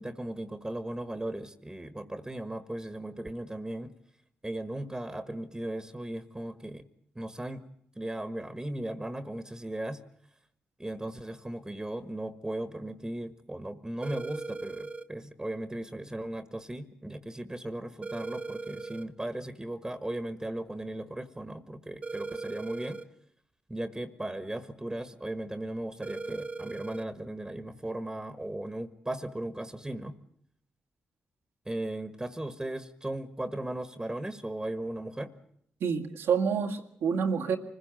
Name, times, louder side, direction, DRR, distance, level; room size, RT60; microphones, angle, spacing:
voice 1, 0.0-3.9 4.4-6.8 7.1-7.6 7.9-10.0 10.8-23.0 23.7-30.1 31.6-35.3, right 1 dB, 15° right, 1.5 m, -37 dB
phone ring, 14.0-15.1 18.0-19.1 22.0-23.1 26.0-27.1, right 3 dB, 35° right, 0.9 m, -38 dB
voice 2, 35.8-37.6, right 6 dB, 85° right, 2.0 m, -28 dB
25.0 x 16.0 x 9.1 m
supercardioid pair, 55°, 4 cm